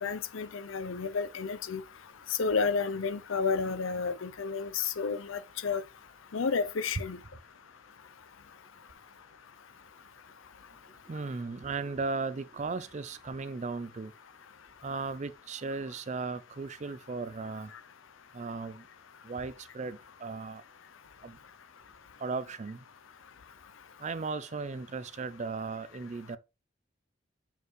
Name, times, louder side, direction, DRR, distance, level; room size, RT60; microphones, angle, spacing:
voice 1, 0.0-1.8 2.4-5.8 6.3-7.2, left 5 dB, 75° left, 0.5 m, -31 dB
voice 2, 11.1-14.1 14.8-17.7 18.3-18.8 19.2-20.6 21.2-21.4 22.2-22.8 24.0-26.4, right 4 dB, 35° right, 0.4 m, -36 dB
6.8 x 4.5 x 3.1 m
head